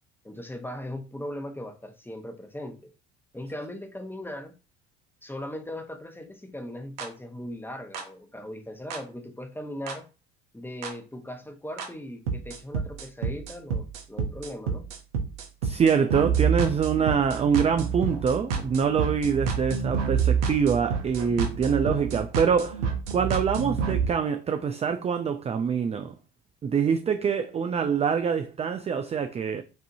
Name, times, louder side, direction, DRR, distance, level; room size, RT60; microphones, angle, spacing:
voice 1, 0.2-2.9 3.3-4.6 5.2-10.1 10.5-14.9, left 1 dB, 5° left, 0.8 m, -38 dB
sound 1, 7.0-7.1 7.9-8.0 8.9-9.0 9.9-10.0 10.8-10.9 11.8-11.9 12.3-24.1, right 6 dB, 85° right, 0.8 m, -28 dB
voice 2, 15.6-22.8 23.1-26.1 26.6-29.6, right 6 dB, 20° right, 0.3 m, -25 dB
5.5 x 2.7 x 2.6 m
hypercardioid pair, 65°, 35 cm